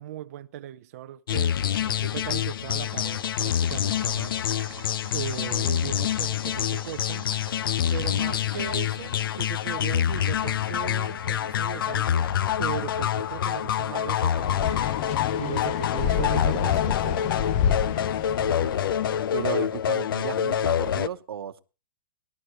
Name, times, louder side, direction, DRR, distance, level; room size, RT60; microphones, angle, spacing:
voice 1, 0.0-4.1 5.1-7.2 7.9-14.9 15.4-17.4, right 12 dB, 40° right, 0.6 m, -38 dB
sound 1, 1.3-21.1, left 9 dB, 65° left, 0.6 m, -26 dB
Boiling, 2.7-16.5, right 9 dB, 60° right, 2.2 m, -49 dB
voice 2, 4.0-4.4 8.2-8.3 18.4-18.8 19.3-21.6, right 8 dB, 85° right, 1.0 m, -35 dB
sound 2, 14.3-19.2, left 9 dB, 25° left, 0.6 m, -28 dB
19.5 x 12.0 x 3.0 m
hypercardioid pair, 170°, 12 cm